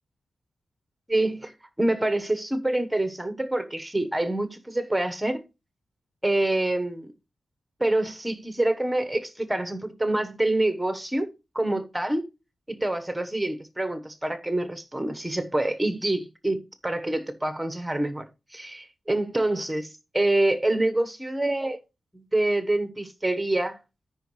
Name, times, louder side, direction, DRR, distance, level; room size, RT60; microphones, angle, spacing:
voice 1, 1.1-1.5 1.8-5.4 6.2-7.1 7.8-11.3 11.5-12.3 12.7-18.2 18.5-21.8 22.1-23.8, right 1 dB, 10° right, 1.1 m, -26 dB
13.5 x 5.4 x 3.2 m
wide cardioid pair, 85°, 0 cm